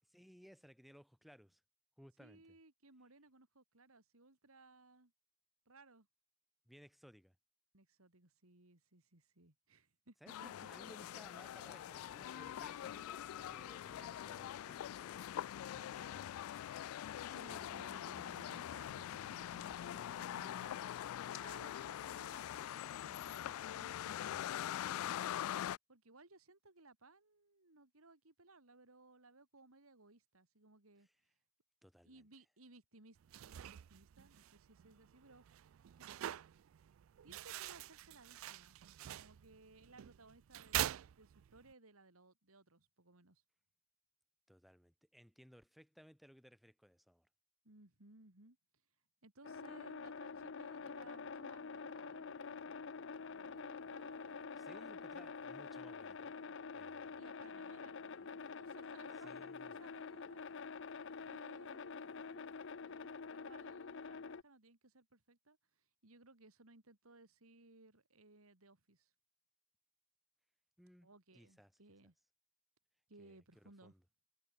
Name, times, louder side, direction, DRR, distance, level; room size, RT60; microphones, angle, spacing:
voice 1, 0.1-1.6 2.0-2.4 6.7-7.3 10.2-15.4 15.7-16.4 24.2-24.5 31.0-31.1 31.8-32.2 44.5-47.3 54.6-56.3 56.7-57.2 59.2-59.7 70.8-71.7 73.2-74.0, equal, ahead, 3.3 m, -61 dB
voice 2, 2.2-5.1 5.7-6.1 7.7-10.7 17.3-25.4 25.9-31.1 32.0-35.6 36.0-36.1 37.2-38.8 39.2-43.4 47.6-48.6 49.2-52.7 53.3-54.9 57.2-60.4 61.3-62.5 62.8-65.6 66.0-69.1 71.0-72.1 73.1-73.9, right 2 dB, 85° right, 3.2 m, -62 dB
sound 1, 10.3-25.8, left 11 dB, 80° left, 0.3 m, -44 dB
sound 2, 33.2-41.7, right 12 dB, 70° right, 0.3 m, -45 dB
sound 3, 49.4-64.4, left 5 dB, 60° left, 0.7 m, -47 dB
head